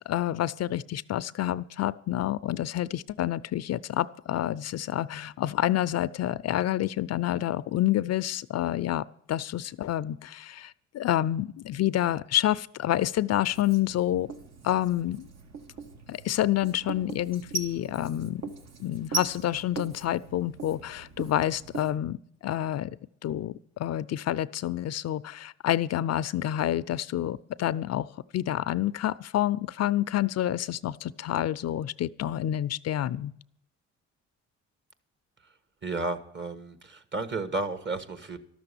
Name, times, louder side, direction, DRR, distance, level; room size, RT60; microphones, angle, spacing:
voice 1, 0.1-14.3 14.6-15.3 16.1-18.4 18.8-23.0 23.2-28.1 28.3-33.3, left 12 dB, 60° left, 16 dB, 0.5 m, -28 dB
Writing, 13.5-22.0, right 4 dB, 60° right, 1.5 m, -40 dB
voice 2, 35.8-38.4, right 3 dB, 40° right, 13 dB, 1.5 m, -32 dB
12.5 x 6.8 x 9.8 m, 0.71 s
cardioid pair, 90°, 30 cm